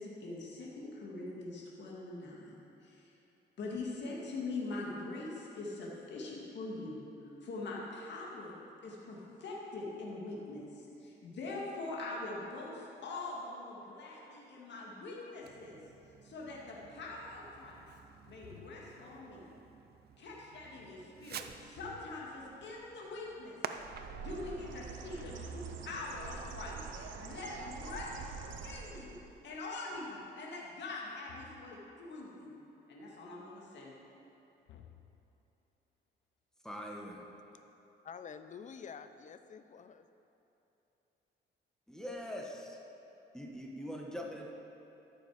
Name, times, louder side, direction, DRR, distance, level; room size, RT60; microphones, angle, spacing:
voice 1, 0.0-2.5 2.8-3.1 3.6-7.0 7.4-8.5 8.8-15.8 16.2-17.8 18.3-19.5 20.2-23.5 24.2-28.2 28.6-32.5 32.9-33.9, left 2 dB, 65° left, -4 dB, 2.1 m, -43 dB
Fireworks, 15.4-26.1, right 7 dB, 55° right, 0.6 m, -51 dB
sound 1, 18.4-19.2 21.7-22.5 25.2-26.3 31.3-31.9 34.7-35.5, left 9 dB, 90° left, 0.7 m, -57 dB
Bird, 23.7-29.3, right 6 dB, 75° right, 0.9 m, -45 dB
voice 2, 36.6-37.3 41.9-42.8 43.3-44.5, equal, 5° left, -1 dB, 1.4 m, -42 dB
voice 3, 38.0-40.1, left 6 dB, 40° left, 10 dB, 0.6 m, -48 dB
13.0 x 6.9 x 5.0 m, 3.0 s
cardioid pair, 90°, 20 cm